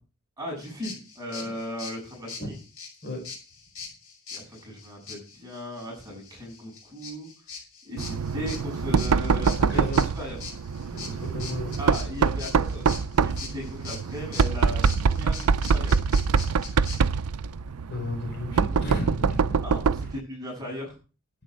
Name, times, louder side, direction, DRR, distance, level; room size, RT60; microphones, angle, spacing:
voice 1, 0.4-2.6 4.3-7.3 7.8-10.4 11.8-16.0 18.7-18.8 19.6-20.9, equal, 15° right, -1 dB, 7.7 m, -37 dB
sound 1, 0.6-17.0, left 5 dB, 70° left, 6.0 m, -42 dB
Knock, 8.0-20.2, right 5 dB, 85° right, 0.5 m, -25 dB
voice 2, 9.7-10.0 11.1-11.7 17.9-19.4, left 1 dB, 50° left, 3 dB, 5.2 m, -33 dB
11.5 x 9.4 x 4.7 m, 0.35 s
head